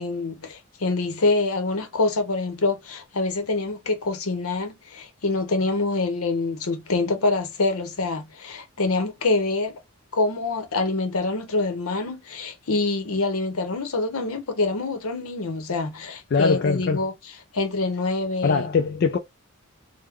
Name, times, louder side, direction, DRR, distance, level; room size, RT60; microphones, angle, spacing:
voice 1, 0.0-9.7 10.1-17.1 17.5-18.7, left 3 dB, 75° left, 0.8 m, -25 dB
voice 2, 16.3-17.0 18.4-19.2, left 4 dB, 45° left, 0.3 m, -21 dB
3.5 x 2.1 x 3.1 m
head